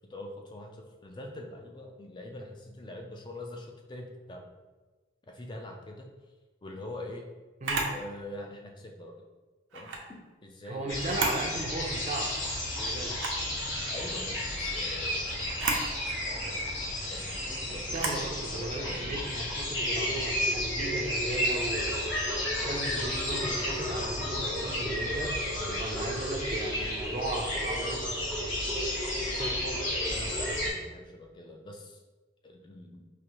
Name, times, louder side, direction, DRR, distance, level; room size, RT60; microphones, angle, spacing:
voice 1, 0.1-4.5 5.3-6.1 6.6-7.3 7.9-9.1 9.7-11.0 13.5-13.6 13.9-15.4 16.3-16.6 17.1-19.2 25.6-25.8 30.1-32.0 32.4-33.1, left 1 dB, 25° left, 2 dB, 0.4 m, -44 dB
Camera, 7.6-8.0 9.7-10.0 11.0-11.5 11.9-12.0 13.1-13.4 15.5-15.9 17.9-18.2, right 3 dB, 80° right, 0.6 m, -31 dB
voice 2, 10.6-12.3 12.7-13.1 17.7-22.0 22.5-25.4 25.8-28.1 29.2-29.8, right 2 dB, 40° right, 1 dB, 0.5 m, -36 dB
sound 1, 10.9-30.7, left 1 dB, 70° left, 1.1 m, -32 dB
4.9 x 2.5 x 3.0 m, 1.2 s
head